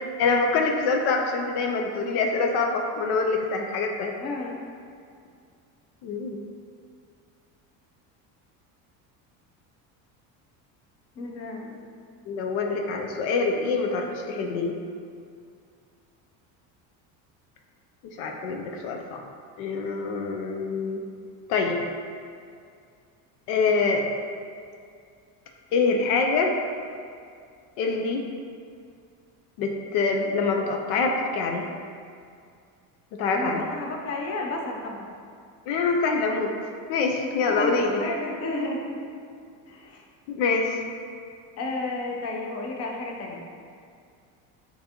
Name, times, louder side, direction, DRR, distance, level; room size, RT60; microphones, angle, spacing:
voice 1, 0.2-4.1 6.0-6.4 12.3-14.7 18.2-19.2 19.6-21.0 21.5-21.8 23.5-24.0 25.7-26.5 27.8-28.2 29.6-31.7 33.1-33.7 35.7-36.5 36.9-38.0 40.3-40.8, left 4 dB, 75° left, 2 dB, 0.6 m, -25 dB
voice 2, 4.2-4.6 11.2-11.8 33.3-35.0 37.2-38.9 39.7-40.0 41.6-43.4, left 2 dB, 40° left, 0 dB, 0.7 m, -32 dB
6.6 x 2.7 x 2.8 m, 2.3 s
cardioid pair, 120°, 40 cm